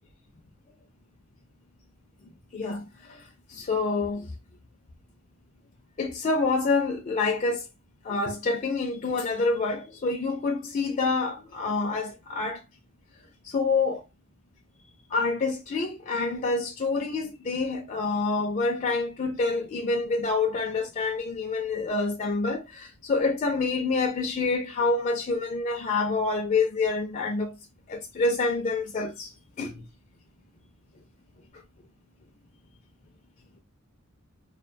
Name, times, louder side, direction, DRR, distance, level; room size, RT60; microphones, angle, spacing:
voice 1, 2.5-4.3 6.0-7.7 8.0-12.6 13.4-14.0 15.1-27.6 27.9-29.8, left 3 dB, 40° left, 0.4 m, -27 dB
2.3 x 2.2 x 2.4 m
head